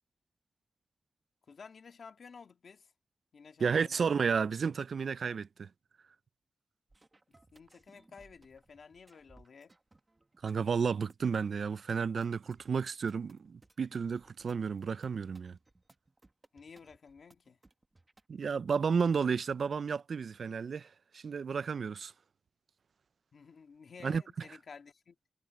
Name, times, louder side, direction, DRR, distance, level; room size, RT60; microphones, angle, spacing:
voice 1, 1.5-2.9 3.3-4.1 7.5-9.7 16.5-17.6 23.3-25.2, left 5 dB, 65° left, 1.9 m, -53 dB
voice 2, 3.6-5.7 10.4-15.6 18.3-20.9 21.1-22.1 24.0-24.2, right 6 dB, 65° right, 0.3 m, -32 dB
sound 1, 6.9-18.3, right 2 dB, 20° right, 1.3 m, -64 dB
wide cardioid pair, 150°, 0 cm